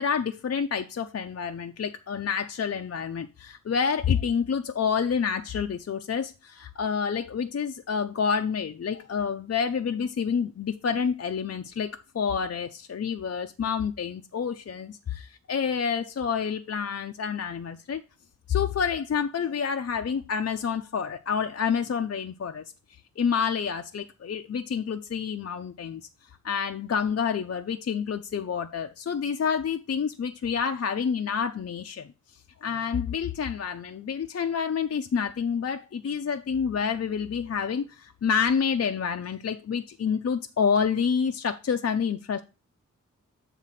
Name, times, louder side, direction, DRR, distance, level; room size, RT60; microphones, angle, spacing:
voice 1, 0.0-18.0 18.5-22.6 23.2-26.1 26.4-32.1 32.6-42.4, left 6 dB, 50° left, 0.5 m, -28 dB
7.5 x 3.6 x 5.7 m
wide cardioid pair, 70°, 31 cm